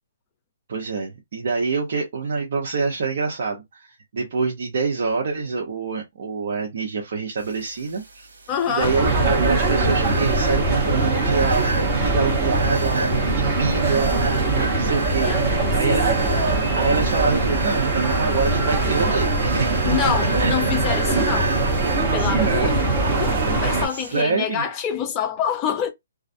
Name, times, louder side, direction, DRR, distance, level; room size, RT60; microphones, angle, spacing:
voice 1, 0.7-8.3 8.7-16.4 16.7-19.9 20.4-22.8 23.5-23.6 23.9-24.6, right 4 dB, 55° right, 0.7 m, -26 dB
sound 1, 7.4-24.2, right 3 dB, 90° right, 1.1 m, -34 dB
voice 2, 8.5-9.0 15.2-15.7 16.2-16.6 19.8-21.5 22.1-22.8 23.2-25.9, left 7 dB, 20° left, 0.4 m, -26 dB
sound 2, 8.8-23.9, right 2 dB, 20° right, 1.0 m, -22 dB
2.3 x 2.0 x 2.6 m
hypercardioid pair, 165°, 0 cm